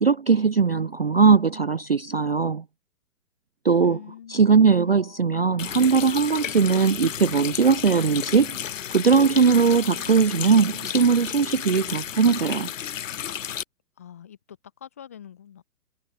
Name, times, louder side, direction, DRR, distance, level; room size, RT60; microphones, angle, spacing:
voice 1, 0.0-2.6 3.6-4.0 4.3-12.7, right 5 dB, 40° right, 0.4 m, -20 dB
voice 2, 3.8-5.5 14.0-15.6, left 9 dB, 10° left, 0.7 m, -45 dB
Water tap faucet, 5.6-13.6, left 9 dB, 55° left, 1.0 m, -33 dB
hypercardioid pair, 170°, 47 cm